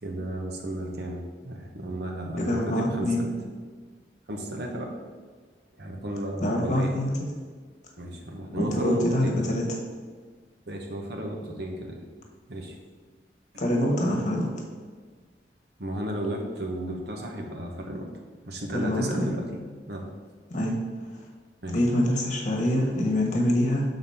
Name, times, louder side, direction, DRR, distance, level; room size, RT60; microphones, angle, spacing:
voice 1, 0.0-3.3 4.3-4.9 5.8-6.9 8.0-9.6 10.7-12.0 12.5-12.7 13.5-13.6 15.8-18.1 18.5-19.6 19.9-20.1 21.6-21.8, right 1 dB, 65° right, 1 dB, 1.1 m, -34 dB
voice 2, 2.3-3.2 6.4-7.1 8.6-9.6 13.6-14.5 18.7-19.3 20.5-20.7 21.7-23.8, left 1 dB, 45° left, 0 dB, 1.3 m, -25 dB
7.1 x 4.0 x 5.6 m, 1.5 s
head